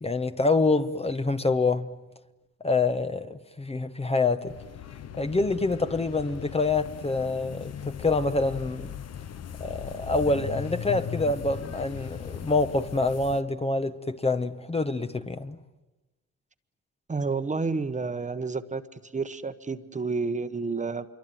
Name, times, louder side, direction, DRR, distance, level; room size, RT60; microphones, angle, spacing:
voice 1, 0.0-1.9 2.6-4.5 5.2-8.9 9.6-15.6, left 3 dB, 20° left, 1.1 m, -26 dB
sound 1, 4.5-13.4, left 8 dB, 55° left, 1.1 m, -38 dB
voice 2, 17.1-21.1, right 4 dB, 25° right, 1.2 m, -30 dB
26.0 x 23.5 x 9.3 m
cardioid pair, 90°, 30 cm